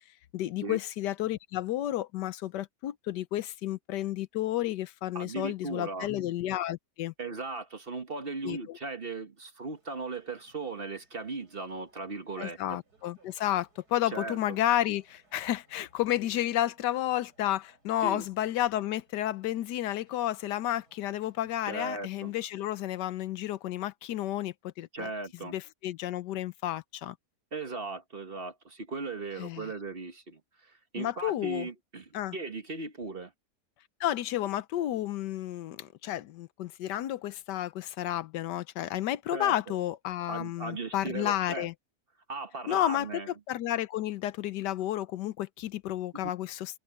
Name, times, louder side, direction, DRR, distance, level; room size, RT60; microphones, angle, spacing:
voice 1, 0.3-7.1 8.4-8.8 12.4-25.1 25.4-27.1 29.4-29.7 31.0-31.7 32.1-32.3 34.0-41.7 42.7-46.8, left 13 dB, 85° left, 1.3 m, -31 dB
voice 2, 5.1-6.1 7.2-12.8 14.1-14.6 18.0-18.2 21.6-22.3 24.9-25.5 27.5-33.3 39.3-39.8 40.3-41.7 42.3-43.3 46.2-46.3, right 3 dB, 35° right, 1.4 m, -38 dB
sound 1, 9.7-22.9, right 2 dB, 65° right, 8.2 m, -68 dB
omnidirectional pair, 1.8 m